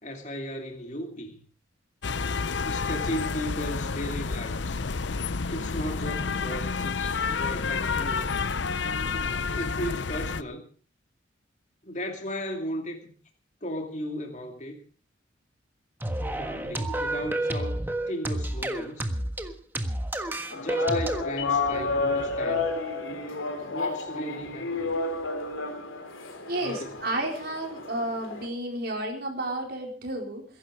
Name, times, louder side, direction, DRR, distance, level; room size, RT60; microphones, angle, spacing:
voice 1, 0.0-1.4 2.6-4.8 5.5-8.3 9.5-10.6 11.8-13.1 13.6-14.8 16.4-17.8 18.1-19.1 20.5-22.7 23.6-25.0 26.6-27.0, equal, 35° left, 2.5 m, -36 dB
sound 1, 2.0-10.4, left 4 dB, 65° left, 0.7 m, -29 dB
sound 2, 16.0-21.2, right 1 dB, 10° right, 1.5 m, -30 dB
sound 3, 20.5-28.5, left 3 dB, 85° left, 3.4 m, -31 dB
voice 2, 26.5-30.5, right 1 dB, 50° right, 4.4 m, -31 dB
22.0 x 11.5 x 5.0 m
head